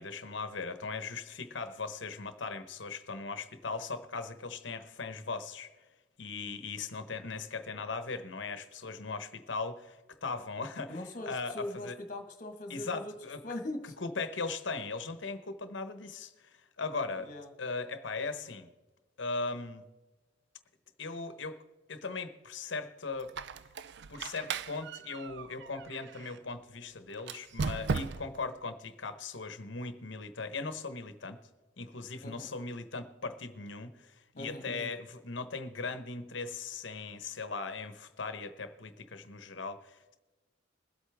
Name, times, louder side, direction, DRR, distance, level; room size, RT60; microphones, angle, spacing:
voice 1, 0.0-5.7 6.2-12.0 12.7-13.4 14.0-17.3 17.6-18.7 19.2-19.8 21.0-21.6 21.9-23.3 24.1-31.4 31.8-40.2, left 4 dB, 65° left, 10 dB, 1.0 m, -39 dB
voice 2, 10.9-13.1 13.4-13.9 17.2-17.5 32.2-32.5 34.4-34.9, left 1 dB, 40° left, 5 dB, 1.6 m, -41 dB
Squeak, 23.2-26.4 27.2-28.5, right 5 dB, 60° right, 0.4 m, -37 dB
21.5 x 8.2 x 3.5 m, 1.2 s
head